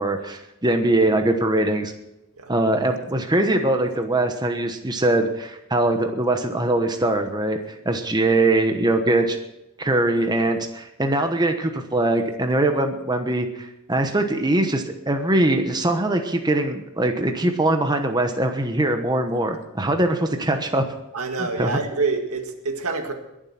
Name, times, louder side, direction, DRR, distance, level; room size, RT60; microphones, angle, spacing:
voice 1, 0.0-1.9 2.5-9.4 9.8-20.8 21.4-21.8, right 2 dB, 20° right, 5 dB, 1.1 m, -22 dB
voice 2, 21.1-23.1, right 4 dB, 80° right, 5 dB, 2.0 m, -26 dB
21.5 x 7.5 x 5.9 m, 0.90 s
head